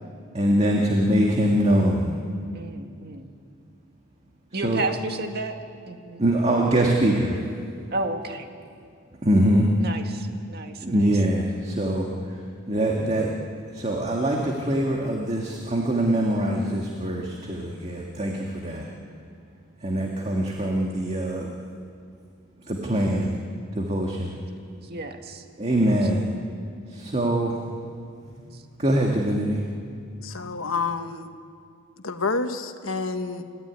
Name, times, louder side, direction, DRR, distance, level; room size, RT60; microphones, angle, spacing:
voice 1, 0.3-2.2 4.5-4.8 6.2-7.5 9.2-9.7 10.8-13.3 13.7-18.9 19.8-21.5 22.7-23.4 23.8-24.4 25.6-26.2 26.9-27.6 28.8-29.6, right 1 dB, 30° right, -1 dB, 1.9 m, -23 dB
voice 2, 2.5-3.3 4.5-5.6 5.9-6.2 7.9-8.5 9.8-11.1 24.8-25.4 25.8-26.4 28.5-28.6, right 2 dB, 50° right, 5 dB, 1.9 m, -33 dB
voice 3, 30.2-31.3 32.0-33.4, left 4 dB, 80° left, 7 dB, 1.4 m, -28 dB
29.5 x 15.5 x 9.6 m, 2.3 s
head